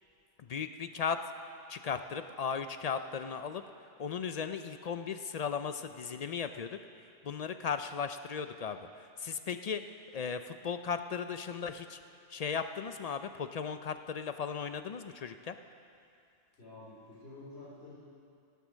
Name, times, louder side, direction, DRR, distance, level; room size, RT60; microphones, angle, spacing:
voice 1, 0.5-1.2 1.7-3.6 4.0-6.8 7.2-8.8 9.2-9.8 10.1-12.0 12.3-15.6, left 6 dB, 55° left, 9 dB, 0.4 m, -36 dB
voice 2, 16.6-18.0, left 2 dB, 80° left, -10 dB, 3.4 m, -49 dB
17.0 x 8.2 x 6.2 m, 2.5 s
omnidirectional pair, 1.1 m